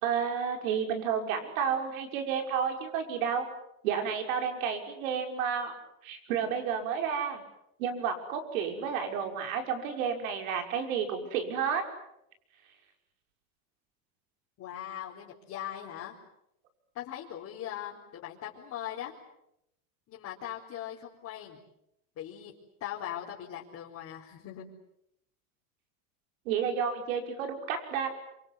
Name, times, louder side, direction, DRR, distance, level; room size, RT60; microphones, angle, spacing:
voice 1, 0.0-3.5 3.8-5.7 6.0-7.4 7.8-11.8 26.5-28.1, right 7 dB, 80° right, 5 dB, 5.9 m, -31 dB
voice 2, 14.6-16.2 16.9-19.1 20.1-21.6 22.2-22.5 22.8-24.7, left 11 dB, 40° left, -4 dB, 4.4 m, -40 dB
27.0 x 26.0 x 8.2 m, 0.80 s
supercardioid pair, 140°, 41 cm